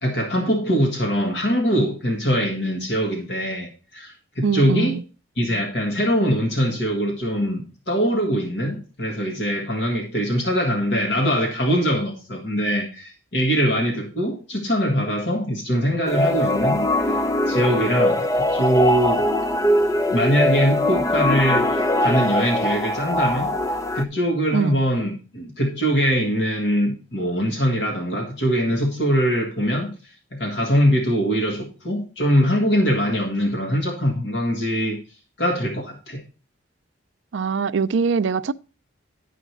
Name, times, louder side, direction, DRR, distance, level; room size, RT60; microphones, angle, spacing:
voice 1, 0.0-5.0 5.4-19.3 20.1-23.5 23.9-35.0 35.4-36.2, equal, 60° left, 1.9 m, -22 dB
voice 2, 4.4-5.0 24.5-24.8 37.3-38.5, right 5 dB, 70° right, 0.4 m, -22 dB
sound 1, 16.1-24.0, left 1 dB, 15° left, 0.5 m, -22 dB
11.0 x 5.0 x 4.6 m
head